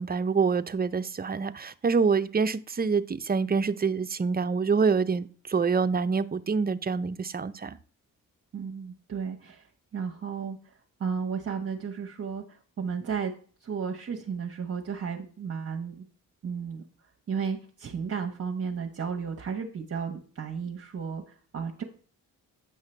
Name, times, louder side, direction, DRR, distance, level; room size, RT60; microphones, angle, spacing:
voice 1, 0.0-7.8, right 5 dB, 25° right, 11 dB, 0.5 m, -26 dB
voice 2, 8.5-13.3 13.6-16.1 16.4-16.8 17.3-21.8, right 6 dB, 40° right, 1 dB, 1.0 m, -34 dB
9.0 x 5.6 x 3.3 m, 0.43 s
cardioid pair, 70°, 36 cm